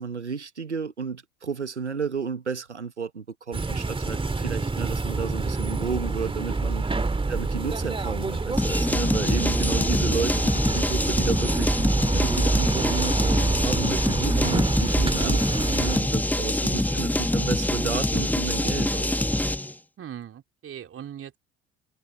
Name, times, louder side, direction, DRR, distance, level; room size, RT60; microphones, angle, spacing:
voice 1, 0.0-6.8 7.3-11.7 12.1-19.1, right 5 dB, 85° right, 1.4 m, -32 dB
sound 1, 3.5-16.0, right 3 dB, 15° right, 2.6 m, -27 dB
sound 2, 8.6-19.7, left 1 dB, 5° left, 1.5 m, -25 dB
voice 2, 20.0-21.3, right 10 dB, 40° right, 4.2 m, -40 dB
figure-of-eight pair, 55°, 34 cm